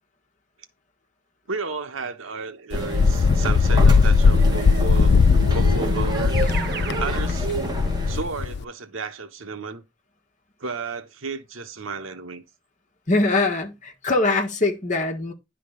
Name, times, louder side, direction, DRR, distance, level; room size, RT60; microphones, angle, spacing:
voice 1, 1.5-5.2 5.5-6.4 7.0-7.5 8.1-9.9 10.6-12.4, right 4 dB, 90° right, 1.1 m, -33 dB
Wind, 2.7-8.6, left 4 dB, 55° left, 0.4 m, -19 dB
sound 1, 2.7-8.2, right 1 dB, 20° right, 2.1 m, -29 dB
Keyboard (musical), 4.3-7.1, right 3 dB, 55° right, 1.2 m, -34 dB
voice 2, 13.1-15.3, left 2 dB, 40° left, 1.6 m, -22 dB
10.5 x 3.8 x 5.0 m
head